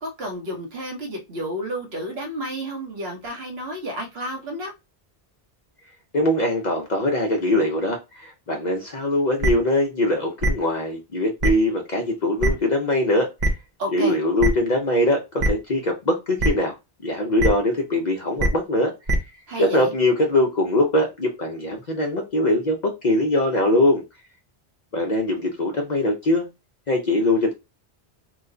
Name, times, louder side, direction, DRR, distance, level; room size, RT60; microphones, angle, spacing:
voice 1, 0.0-4.7 13.8-14.2 19.5-19.9, equal, 65° right, 1.3 m, -31 dB
voice 2, 6.1-13.3 13.9-16.7 17.0-18.9 19.6-24.0 24.9-26.5 26.9-27.5, left 1 dB, 45° left, 0.7 m, -22 dB
sound 1, 9.4-9.5 10.4-10.5 11.4-11.5 12.4-12.5 13.4-13.5 14.4-14.5 15.4-15.5 16.4-16.5 17.4-17.5 18.4-18.5 19.1-19.2, right 1 dB, 45° right, 0.7 m, -20 dB
3.0 x 2.2 x 3.7 m
omnidirectional pair, 1.1 m